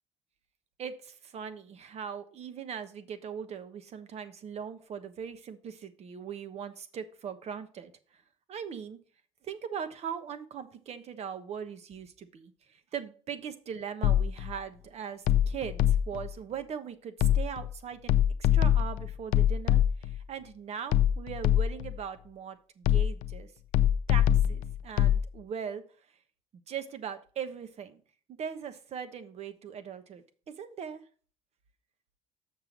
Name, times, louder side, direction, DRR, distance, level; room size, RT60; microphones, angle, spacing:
voice 1, 0.8-8.2 8.5-9.0 9.4-18.1 18.4-23.5 24.1-25.8 26.5-28.0 28.3-31.0, right 7 dB, 55° right, 10 dB, 1.1 m, -40 dB
sound 1, 14.0-14.5 15.3-16.3 17.2-17.7 18.1-20.2 20.9-22.0 22.8-23.4 23.7-25.2, left 10 dB, 75° left, 0.5 m, -24 dB
6.6 x 6.1 x 5.3 m, 0.42 s
supercardioid pair, 85°, 13 cm